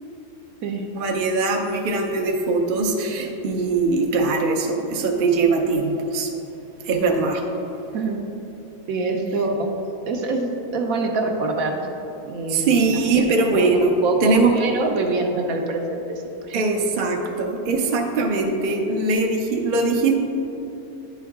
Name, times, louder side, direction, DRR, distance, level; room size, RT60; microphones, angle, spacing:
voice 1, 1.0-6.3 6.8-7.4 12.5-13.9 14.2-14.5 16.5-20.2, right 3 dB, 55° right, 2 dB, 0.6 m, -21 dB
voice 2, 8.9-9.7 10.1-11.8 12.2-13.3 13.5-13.7 14.0-16.6, right 3 dB, 70° right, 3 dB, 1.1 m, -25 dB
10.0 x 4.6 x 3.5 m, 2.9 s
omnidirectional pair, 1.6 m